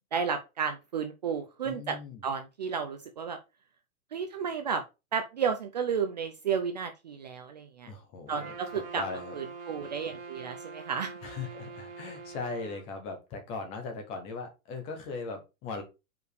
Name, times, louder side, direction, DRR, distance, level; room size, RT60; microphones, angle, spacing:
voice 1, 0.1-2.0 2.2-3.4 4.1-4.8 5.1-7.9 8.3-9.0 9.3-11.1, right 6 dB, 30° right, 6 dB, 0.5 m, -32 dB
voice 2, 1.6-2.2 7.9-9.3 11.2-15.8, left 4 dB, 15° left, 5 dB, 0.7 m, -39 dB
Trumpet, 8.3-12.8, right 4 dB, 55° right, 1.8 m, -44 dB
5.1 x 4.9 x 4.8 m, 0.27 s
hypercardioid pair, 170°, 43 cm